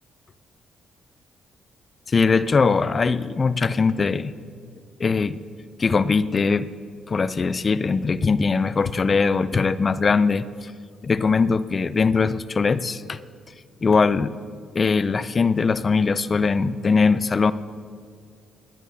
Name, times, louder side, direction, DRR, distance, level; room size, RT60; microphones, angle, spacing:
voice 1, 2.1-4.3 5.0-5.4 5.8-6.7 7.1-10.7 11.0-13.2 13.8-14.3 14.8-17.5, left 4 dB, 35° left, 15 dB, 0.4 m, -21 dB
19.5 x 12.0 x 2.7 m, 2.1 s
cardioid pair, 90°, 0 cm